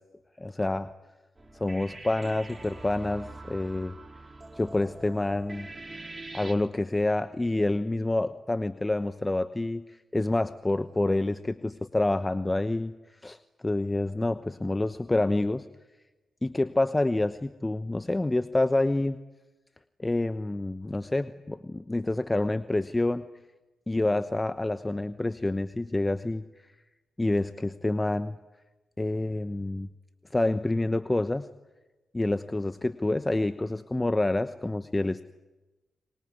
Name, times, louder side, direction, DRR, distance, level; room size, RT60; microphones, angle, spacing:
voice 1, 0.4-0.9 1.6-4.0 4.6-5.7 6.3-12.9 13.2-13.4 13.6-15.7 16.4-19.2 20.0-23.3 23.9-26.4 27.2-28.4 29.0-29.9 30.3-31.5 32.1-35.2, left 2 dB, 20° left, 12 dB, 1.0 m, -27 dB
sound 1, 1.4-6.5, right 2 dB, 30° right, 4.0 m, -44 dB
24.5 x 22.0 x 9.6 m, 1.1 s
hypercardioid pair, 40°, 0 cm